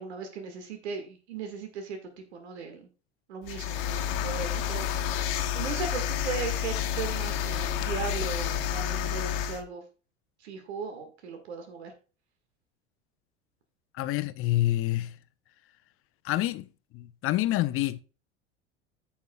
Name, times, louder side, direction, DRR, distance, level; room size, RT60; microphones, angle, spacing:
voice 1, 0.0-2.9 3.3-5.1 5.5-9.8 10.4-11.9, right 5 dB, 70° right, 1.8 m, -37 dB
sound 1, 3.4-9.6, left 9 dB, 60° left, 1.3 m, -30 dB
voice 2, 13.9-15.2 16.2-16.7 16.9-18.0, left 15 dB, 40° left, 0.7 m, -27 dB
14.5 x 5.7 x 2.3 m
figure-of-eight pair, 75°, 33 cm